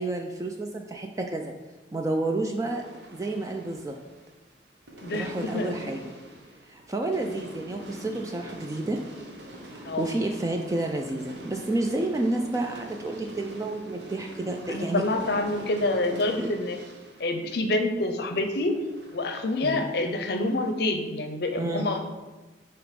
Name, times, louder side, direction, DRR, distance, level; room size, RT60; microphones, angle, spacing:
voice 1, 0.0-1.5 1.9-2.8 3.1-4.0 5.1-6.0 6.7-9.0 9.7-15.0 16.4-16.5 19.6-19.9 21.6-21.9, right 2 dB, 15° right, 3 dB, 0.3 m, -30 dB
sound 1, 2.7-4.5 4.9-18.3 18.7-20.7, right 1 dB, 65° right, 0.9 m, -44 dB
voice 2, 5.0-5.8 9.8-10.1 14.7-16.8 17.2-18.8 19.1-22.1, left 2 dB, 60° left, 6 dB, 0.6 m, -27 dB
6.4 x 3.0 x 5.1 m, 1.2 s
head